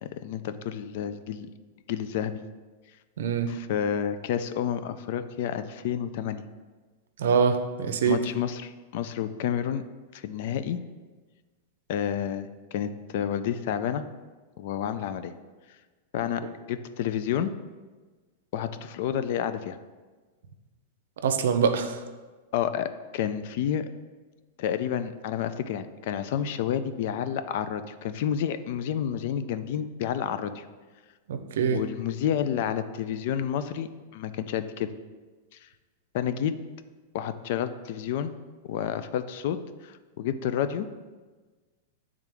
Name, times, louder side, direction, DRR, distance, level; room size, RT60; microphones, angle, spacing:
voice 1, 0.0-1.5 1.9-2.4 3.5-6.4 8.1-9.8 10.1-10.8 11.9-14.0 14.6-15.3 16.1-16.4 16.7-17.5 18.5-19.8 22.5-23.9 24.6-30.7 31.7-34.9 36.1-36.5 37.1-38.3 38.7-40.9, left 9 dB, 55° left, 11 dB, 0.3 m, -30 dB
voice 2, 3.2-3.5 7.2-8.2 21.2-22.0 31.3-31.8, right 6 dB, 80° right, 8 dB, 0.5 m, -24 dB
8.3 x 3.5 x 3.4 m, 1.3 s
supercardioid pair, 150°, 0 cm